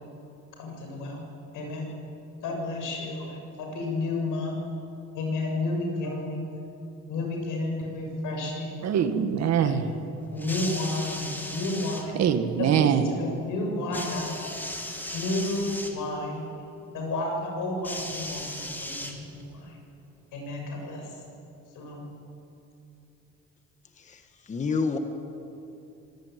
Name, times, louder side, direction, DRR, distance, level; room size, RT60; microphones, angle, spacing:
voice 1, 0.6-1.2 1.5-1.9 2.4-4.5 5.1-6.5 7.1-8.8 9.6-9.9 10.3-12.2 12.6-14.6 15.1-16.5 16.9-19.7 20.3-21.0 21.8-22.0, left 2 dB, 80° left, 1 dB, 7.1 m, -31 dB
voice 2, 8.8-10.0 12.1-13.1, right 8 dB, 60° right, 8 dB, 1.8 m, -23 dB
sound 1, 10.4-12.1 13.9-16.0 17.8-19.5 20.5-20.6, left 1 dB, 5° left, 2.2 m, -36 dB
voice 3, 24.0-25.0, left 4 dB, 25° left, 6 dB, 1.3 m, -29 dB
25.5 x 18.0 x 9.4 m, 2.8 s
cardioid pair, 160°, 31 cm